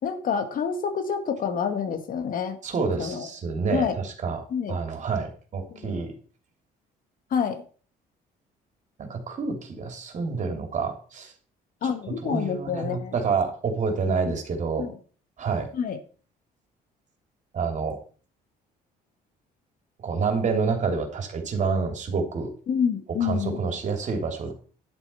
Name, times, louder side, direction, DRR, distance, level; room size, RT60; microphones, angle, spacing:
voice 1, 0.0-2.6 3.0-3.3 3.7-4.0 4.5-4.8 5.7-5.9 7.3-7.6 11.8-13.1 14.3-14.4 14.8-15.0 15.7-16.0 22.7-23.6, left 7 dB, 55° left, 7 dB, 2.0 m, -27 dB
voice 2, 2.6-6.2 9.0-11.3 11.8-14.8 15.4-15.7 17.5-18.0 20.0-22.5 23.2-24.5, right 4 dB, 45° right, 4 dB, 3.2 m, -28 dB
10.5 x 8.0 x 5.6 m, 0.41 s
cardioid pair, 110°, 17 cm